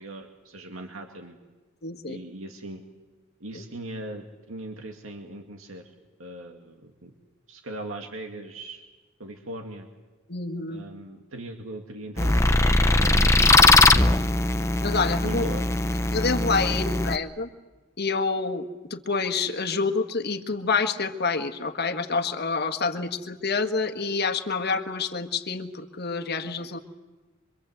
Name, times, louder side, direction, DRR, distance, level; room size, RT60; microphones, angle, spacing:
voice 1, 0.0-1.4 2.1-2.8 3.4-5.9 6.2-7.1 7.5-8.8 9.2-9.9 10.7-14.0 15.2-15.7 16.7-16.8 22.9-23.0, right 1 dB, 90° right, 3 dB, 2.3 m, -39 dB
voice 2, 1.8-2.2 10.3-10.8 14.8-15.5 16.1-17.5 18.0-18.6 18.9-26.8, left 4 dB, 55° left, 7 dB, 1.6 m, -27 dB
sound 1, 12.2-17.2, left 2 dB, 15° left, 0.8 m, -20 dB
25.5 x 24.5 x 8.1 m, 1.3 s
head